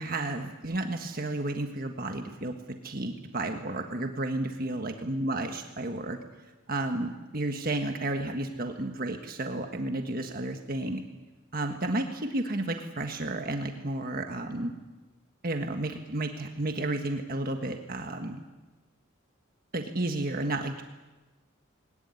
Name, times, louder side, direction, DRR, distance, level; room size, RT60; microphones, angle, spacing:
voice 1, 0.0-2.5 2.8-6.2 6.7-11.0 11.5-14.7 15.4-18.4 19.7-20.8, right 2 dB, 45° right, 4 dB, 1.5 m, -32 dB
21.5 x 19.0 x 9.7 m, 1.2 s
head